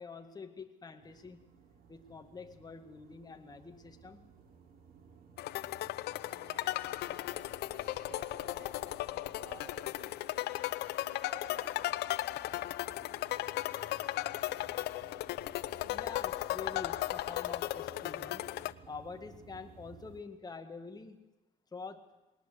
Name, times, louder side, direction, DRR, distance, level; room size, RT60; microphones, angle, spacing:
voice 1, 0.0-1.4 1.9-4.2 15.8-18.5 18.9-21.3 21.7-22.2, left 4 dB, 25° left, 6 dB, 1.9 m, -46 dB
sound 1, 1.0-20.2, right 5 dB, 65° right, 3.7 m, -58 dB
sound 2, 5.4-18.7, left 16 dB, 80° left, 0.7 m, -36 dB
voice 2, 6.2-10.4 11.0-11.8, right 6 dB, 80° right, 3 dB, 6.2 m, -55 dB
20.5 x 18.5 x 8.0 m, 1.0 s
cardioid pair, 110°, 17 cm